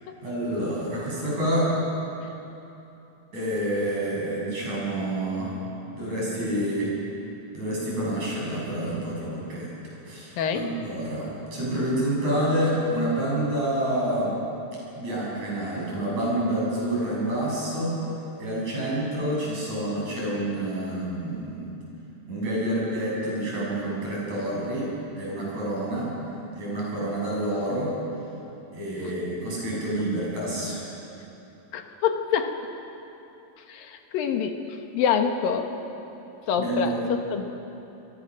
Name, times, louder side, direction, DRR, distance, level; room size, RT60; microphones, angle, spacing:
voice 1, 0.2-1.7 3.3-5.5 6.0-6.9 7.5-9.7 10.0-14.3 14.9-18.0 18.4-21.7 22.3-24.9 25.2-26.1 26.6-27.9 28.7-30.8 36.6-37.0, right 1 dB, 50° right, -5 dB, 9.3 m, -28 dB
voice 2, 10.4-10.7 29.7-29.8 31.7-32.5 33.7-34.5 34.9-35.7 36.5-37.4, left 7 dB, 80° left, 5 dB, 3.2 m, -26 dB
27.5 x 22.0 x 6.5 m, 3.0 s
omnidirectional pair, 4.1 m